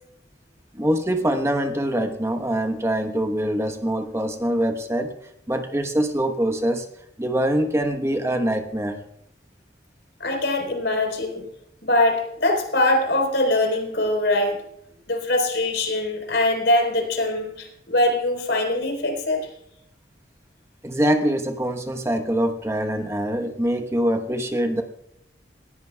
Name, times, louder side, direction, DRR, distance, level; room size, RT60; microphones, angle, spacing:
voice 1, 0.7-5.1 5.5-6.9 7.2-9.0 20.8-24.8, right 1 dB, 15° right, 6 dB, 1.1 m, -24 dB
voice 2, 10.2-11.4 11.8-14.6 15.1-19.5, left 1 dB, 85° left, 2 dB, 4.1 m, -22 dB
19.5 x 14.5 x 2.3 m, 0.76 s
head